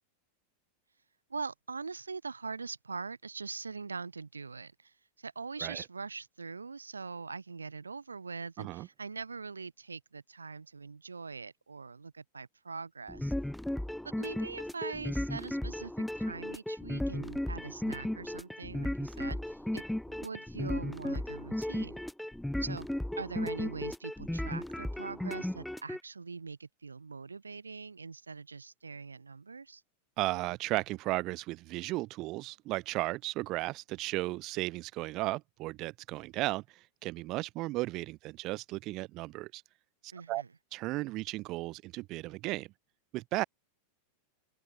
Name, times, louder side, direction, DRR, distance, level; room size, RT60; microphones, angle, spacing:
voice 1, 1.3-13.3 14.0-15.9 16.2-22.0 22.6-22.9 23.2-29.8 40.1-40.5, right 4 dB, 75° right, 1.2 m, -42 dB
sound 1, 13.1-26.0, left 1 dB, 5° left, 1.2 m, -35 dB
voice 2, 30.2-39.6 40.0-40.4 40.7-42.7 43.1-43.4, right 20 dB, 40° right, 0.4 m, -35 dB
open air
figure-of-eight pair, 90°, 0 cm